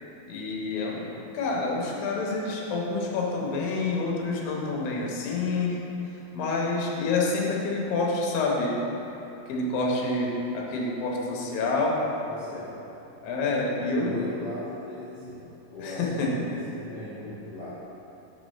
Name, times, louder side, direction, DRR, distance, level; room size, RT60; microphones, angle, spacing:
voice 1, 0.3-5.8 6.3-8.8 9.5-12.0 13.2-14.1 15.8-16.3, left 3 dB, 75° left, -2 dB, 2.6 m, -28 dB
voice 2, 12.2-12.9 13.2-13.4 14.0-17.7, left 1 dB, 50° left, -13 dB, 1.3 m, -39 dB
6.2 x 4.8 x 6.4 m, 2.9 s
omnidirectional pair, 4.5 m